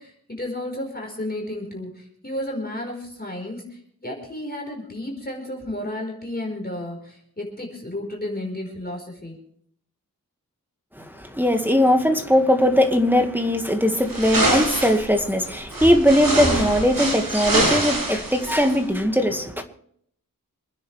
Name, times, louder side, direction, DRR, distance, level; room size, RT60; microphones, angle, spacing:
voice 1, 0.0-9.4, left 1 dB, 25° left, 4.9 m, -32 dB
voice 2, 11.0-19.6, equal, 5° right, 2.0 m, -20 dB
sound 1, 14.1-15.0 15.7-18.8, right 1 dB, 85° right, 7.7 m, -24 dB
27.5 x 10.0 x 3.5 m
wide cardioid pair, 70°, 35 cm